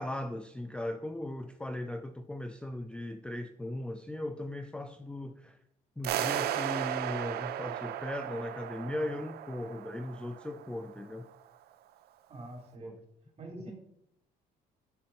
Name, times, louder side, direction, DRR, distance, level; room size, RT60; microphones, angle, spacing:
voice 1, 0.0-5.6 6.0-11.3 12.8-13.0, left 1 dB, 5° left, 8 dB, 0.4 m, -38 dB
sound 1, 6.0-11.0, right 11 dB, 70° right, 0.7 m, -35 dB
voice 2, 12.3-12.9 13.4-13.7, right 1 dB, 35° right, -1 dB, 3.6 m, -45 dB
7.6 x 7.0 x 4.4 m, 0.74 s
cardioid pair, 110°, 17 cm